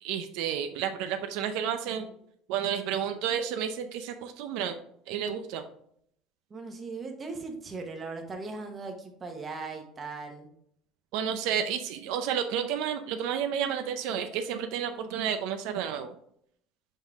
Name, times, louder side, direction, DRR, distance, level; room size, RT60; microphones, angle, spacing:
voice 1, 0.0-2.1 2.5-4.8 5.1-5.6 11.1-16.1, right 8 dB, 70° right, 7 dB, 0.5 m, -31 dB
voice 2, 6.5-10.5, right 3 dB, 20° right, 3 dB, 1.0 m, -38 dB
5.5 x 5.5 x 3.5 m, 0.69 s
cardioid pair, 160°, 0 cm